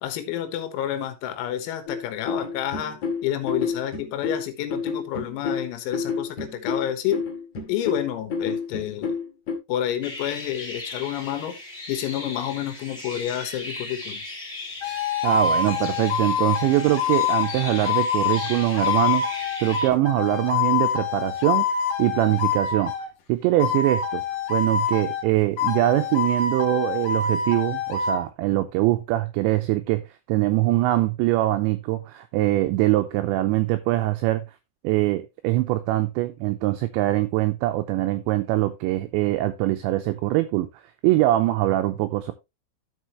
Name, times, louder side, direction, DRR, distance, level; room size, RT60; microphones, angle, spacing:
voice 1, 0.0-7.2 7.7-9.2 9.7-11.6 11.9-14.2, left 11 dB, 85° left, 4.0 m, -29 dB
sound 1, 1.9-9.6, left 5 dB, 45° left, 2.4 m, -29 dB
sound 2, 10.0-19.9, left 2 dB, 15° left, 2.9 m, -38 dB
sound 3, 14.8-23.1 23.6-25.3 25.6-28.2, left 6 dB, 70° left, 1.9 m, -25 dB
voice 2, 15.2-19.3 19.6-21.7 22.0-22.9 23.3-24.2 24.5-30.0 30.3-34.4 34.8-40.7 41.0-42.3, right 16 dB, 90° right, 2.5 m, -23 dB
14.0 x 5.2 x 3.0 m
omnidirectional pair, 5.9 m